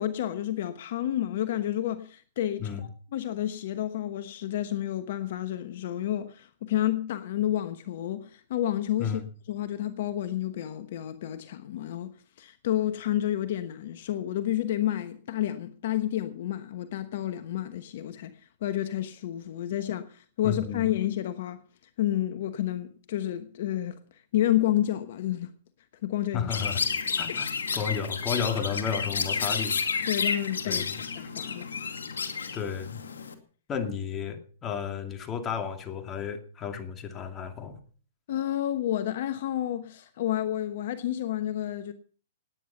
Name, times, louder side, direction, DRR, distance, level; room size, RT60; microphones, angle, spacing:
voice 1, 0.0-9.2 9.5-21.6 22.0-24.0 24.3-25.5 26.0-26.5 30.0-31.9 38.3-41.9, left 12 dB, 60° left, 1.1 m, -30 dB
voice 2, 20.4-20.9 26.3-26.8 27.2-29.8 30.7-30.9 32.5-33.0 33.7-37.8, left 7 dB, 25° left, 2.4 m, -32 dB
Chirp tweet, 26.5-33.3, left 5 dB, 85° left, 2.4 m, -31 dB
18.0 x 9.6 x 5.7 m
hypercardioid pair, 130°, 0 cm